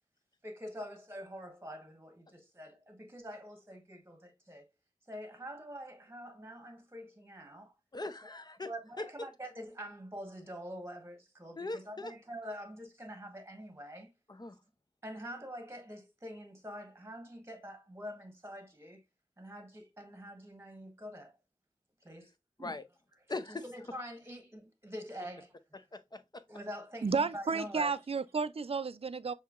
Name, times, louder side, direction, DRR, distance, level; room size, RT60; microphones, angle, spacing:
voice 1, 0.4-4.7 5.1-7.7 8.6-14.1 15.0-19.0 19.4-21.4 22.0-22.3 22.6-22.8 23.5-25.5 26.5-27.9, equal, 20° right, 1.1 m, -45 dB
voice 2, 7.9-8.7 9.0-9.1 11.6-12.1 14.3-14.5 22.6-22.8 23.3-23.6 25.9-26.4, left 2 dB, 35° left, 0.5 m, -40 dB
voice 3, 27.0-29.3, right 5 dB, 50° right, 0.4 m, -32 dB
6.5 x 2.8 x 2.4 m
wide cardioid pair, 55°, 13 cm